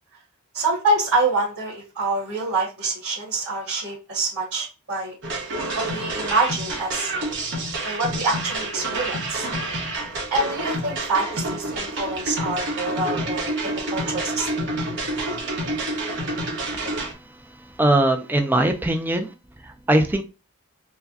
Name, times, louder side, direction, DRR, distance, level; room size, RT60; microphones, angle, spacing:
voice 1, 0.5-5.1 5.9-7.1 7.8-9.5 10.3-14.7, right 2 dB, 75° right, -9 dB, 1.7 m, -26 dB
sound 1, 5.2-17.1, right 2 dB, 55° right, 1.1 m, -28 dB
voice 2, 17.8-19.3 19.6-20.2, right 1 dB, 10° right, 5 dB, 0.4 m, -21 dB
4.6 x 2.2 x 2.6 m, 0.30 s
head